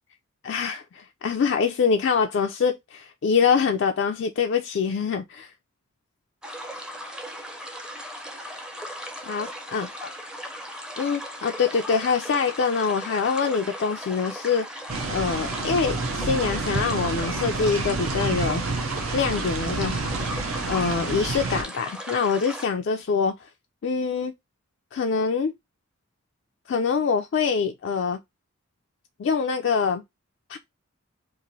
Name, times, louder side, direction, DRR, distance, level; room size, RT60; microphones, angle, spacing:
voice 1, 0.4-5.5 9.2-10.1 11.0-14.7 15.1-18.6 19.1-20.1 20.7-23.5 23.8-24.3 24.9-25.5 26.7-28.2 29.2-30.0 30.5-30.6, left 5 dB, 60° left, 0.3 m, -24 dB
sound 1, 6.4-22.7, equal, 5° right, 0.4 m, -37 dB
sound 2, 14.9-21.6, right 3 dB, 90° right, 0.6 m, -29 dB
3.0 x 2.5 x 2.6 m
head